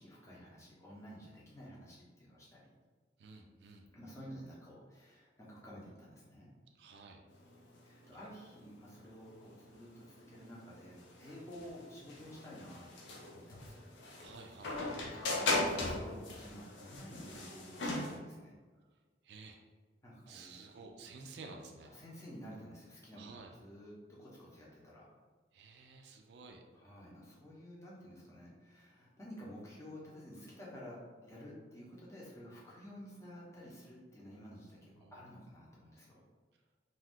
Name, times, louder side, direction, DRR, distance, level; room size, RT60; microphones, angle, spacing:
voice 1, 0.0-2.7 3.9-6.5 7.8-13.9 14.7-18.5 20.0-20.6 21.9-25.0 26.7-36.2, equal, 15° left, -5 dB, 0.7 m, -51 dB
voice 2, 3.2-3.9 6.7-7.2 8.1-8.2 14.2-14.8 19.2-19.6 20.3-21.9 23.2-23.5 25.5-26.6 34.9-35.2, right 3 dB, 65° right, 2 dB, 0.3 m, -52 dB
sound 1, 7.3-18.2, left 2 dB, 90° left, 0.5 m, -39 dB
2.5 x 2.3 x 3.5 m, 1.4 s
head